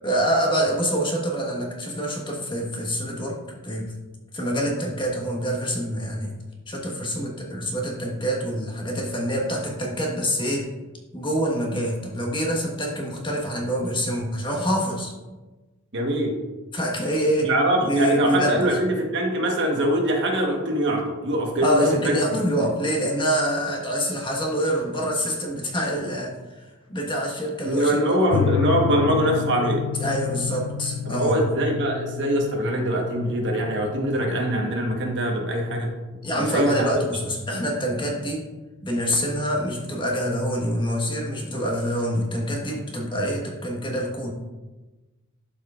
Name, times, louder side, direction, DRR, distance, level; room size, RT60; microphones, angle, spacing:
voice 1, 0.0-3.4 3.6-3.9 4.3-6.3 6.7-10.7 11.1-15.1 16.7-17.5 17.8-18.8 21.6-26.6 26.9-28.0 28.3-28.4 30.0-31.3 36.2-38.5 38.8-44.3, equal, 25° left, -1 dB, 1.3 m, -26 dB
voice 2, 15.9-16.3 17.4-22.2 22.6-22.7 27.6-29.8 31.1-35.9 36.4-36.8, right 1 dB, 60° right, 1 dB, 1.2 m, -23 dB
sound 1, 28.3-37.3, left 7 dB, 65° left, 0.4 m, -31 dB
12.0 x 4.8 x 2.4 m, 1.2 s
head